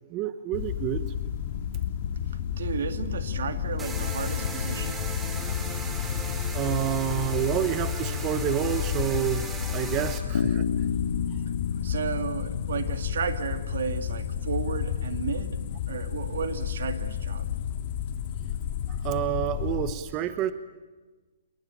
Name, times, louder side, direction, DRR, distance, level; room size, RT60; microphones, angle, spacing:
voice 1, 0.1-1.1 6.5-9.4 9.7-10.6 18.9-20.5, right 12 dB, 25° right, 12 dB, 1.0 m, -28 dB
sound 1, 0.5-19.9, left 9 dB, 45° left, 1.8 m, -31 dB
voice 2, 2.6-5.0 9.9-10.1 11.8-15.6 15.9-17.5, right 6 dB, 70° right, 9 dB, 2.4 m, -33 dB
sound 2, 3.8-10.2, right 3 dB, 10° right, 2.6 m, -37 dB
Bass guitar, 10.3-14.4, left 6 dB, 85° left, 1.6 m, -31 dB
27.5 x 22.0 x 9.1 m, 1.3 s
hypercardioid pair, 160°, 0 cm